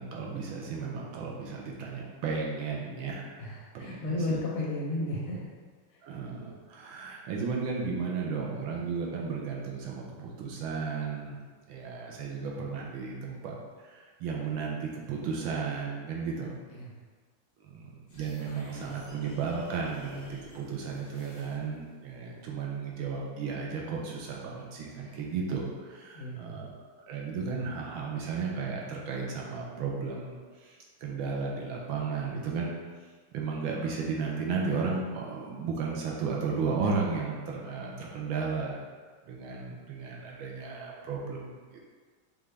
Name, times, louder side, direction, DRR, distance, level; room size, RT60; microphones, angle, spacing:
voice 1, 0.0-4.4 6.0-11.4 11.7-16.5 17.6-26.7 27.1-32.7 33.3-38.8 39.3-41.6, right 5 dB, 75° right, -2 dB, 1.4 m, -34 dB
voice 2, 3.4-5.4 5.9-6.0 16.8-16.9 25.0-25.2 26.1-26.4, left 2 dB, 75° left, -3 dB, 1.7 m, -33 dB
sound 1, 18.1-21.9, left 1 dB, 55° left, 0.8 m, -53 dB
5.4 x 2.4 x 3.3 m, 1.5 s
omnidirectional pair, 2.4 m